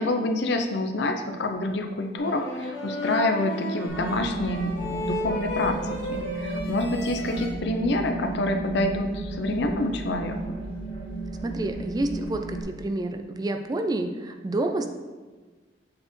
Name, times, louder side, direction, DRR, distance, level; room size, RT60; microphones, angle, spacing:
voice 1, 0.0-5.8 6.1-10.4, left 2 dB, 70° left, 5 dB, 0.6 m, -27 dB
sound 1, 2.2-7.5, left 1 dB, 90° left, 1.8 m, -33 dB
sound 2, 3.9-12.6, right 2 dB, 30° left, 0.9 m, -34 dB
voice 2, 11.4-14.9, right 2 dB, 20° right, 6 dB, 0.4 m, -28 dB
7.5 x 4.2 x 3.1 m, 1.3 s
head